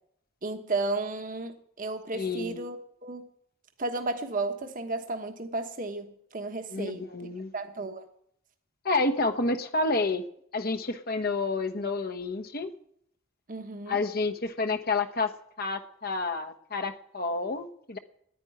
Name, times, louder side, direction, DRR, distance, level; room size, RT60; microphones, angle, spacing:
voice 1, 0.4-3.3 3.8-7.1 7.5-8.1 13.5-14.0, right 2 dB, 40° right, 1.2 m, -33 dB
voice 2, 2.1-2.6 6.7-7.5 8.8-10.2 10.5-12.7 13.9-15.3 15.6-18.0, left 3 dB, 45° left, 1.1 m, -29 dB
10.5 x 9.8 x 9.6 m
head